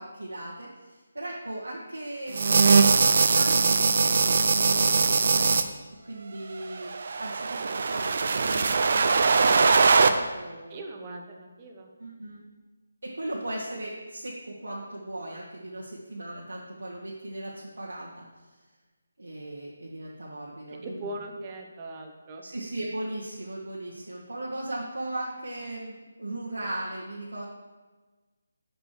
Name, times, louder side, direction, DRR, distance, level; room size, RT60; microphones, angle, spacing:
voice 1, 0.0-5.5 6.0-6.9 7.2-8.2 8.4-10.8 12.0-12.4 13.0-18.2 19.2-21.1 22.4-27.4, right 1 dB, 90° right, -6 dB, 1.5 m, -38 dB
sound 1, 2.3-5.6 6.8-10.1, right 4 dB, 55° right, 0.5 m, -21 dB
voice 2, 10.7-11.9 20.8-22.4, right 2 dB, 25° right, 2 dB, 1.0 m, -40 dB
6.0 x 5.3 x 6.4 m, 1.3 s
figure-of-eight pair, 160°, 0 cm